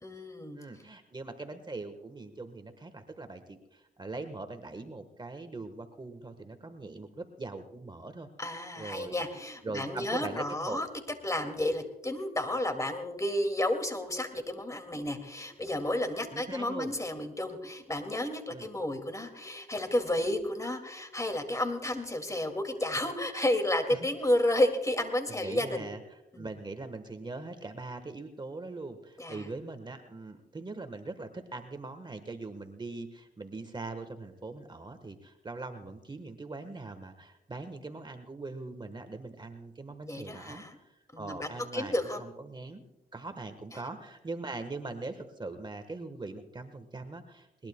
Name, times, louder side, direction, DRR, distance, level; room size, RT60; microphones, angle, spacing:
voice 1, 0.0-0.6 8.4-10.9 11.2-25.9 26.3-26.5 29.2-29.5 40.1-40.8 41.1-42.2, left 1 dB, 20° left, 6 dB, 2.2 m, -31 dB
voice 2, 0.5-8.3 8.8-9.3 9.6-10.8 16.3-16.9 18.5-18.7 23.9-24.1 25.4-26.0 26.4-42.8 43.1-47.7, right 3 dB, 25° right, 8 dB, 1.2 m, -41 dB
21.0 x 20.5 x 2.2 m, 0.88 s
cardioid pair, 80°, 17 cm